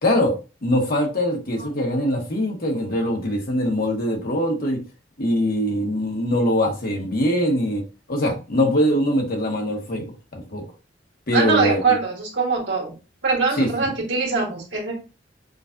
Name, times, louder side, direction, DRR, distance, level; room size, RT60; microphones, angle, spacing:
voice 1, 0.0-0.3 0.6-4.8 5.2-7.8 8.1-10.1 10.3-10.6 11.3-11.8 13.6-13.7, equal, 55° left, 1 dB, 1.1 m, -22 dB
voice 2, 11.3-12.9 13.2-15.0, right 4 dB, 80° right, -1 dB, 1.5 m, -22 dB
5.0 x 2.4 x 2.4 m, 0.31 s
head